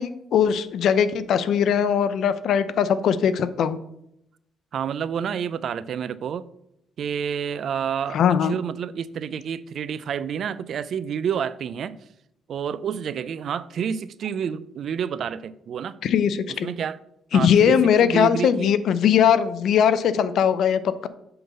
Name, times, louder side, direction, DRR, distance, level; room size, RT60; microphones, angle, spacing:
voice 1, 0.0-3.8 8.1-8.6 16.0-16.7 17.3-21.1, left 8 dB, 70° left, 0.6 m, -20 dB
voice 2, 4.7-6.5 7.0-12.0 12.5-16.0 16.5-17.0 17.3-18.7, right 7 dB, 65° right, 0.4 m, -29 dB
7.8 x 3.8 x 6.6 m
cardioid pair, 90°, 0 cm